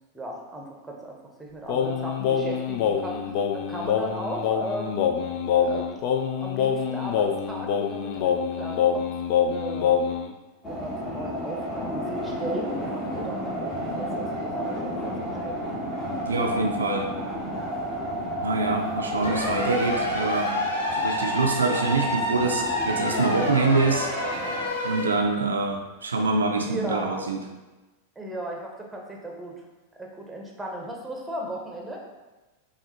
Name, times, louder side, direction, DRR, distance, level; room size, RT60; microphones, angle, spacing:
voice 1, 0.1-5.1 5.3-5.9 6.4-9.1 9.4-10.0 10.7-15.2 15.4-15.7 26.5-27.3 28.2-29.6 29.9-32.0, right 1 dB, 5° right, -1 dB, 0.8 m, -36 dB
Singing, 1.7-10.3, left 8 dB, 45° left, 0.3 m, -25 dB
sound 1, 10.6-24.7, equal, 25° left, 0.9 m, -32 dB
voice 2, 16.3-17.1 18.4-20.5 20.9-24.1 24.8-27.4, right 3 dB, 70° right, 2 dB, 0.4 m, -25 dB
sound 2, 19.2-25.1, left 1 dB, 70° left, 0.8 m, -29 dB
5.6 x 2.4 x 2.8 m, 1.1 s
figure-of-eight pair, 90°, 0 cm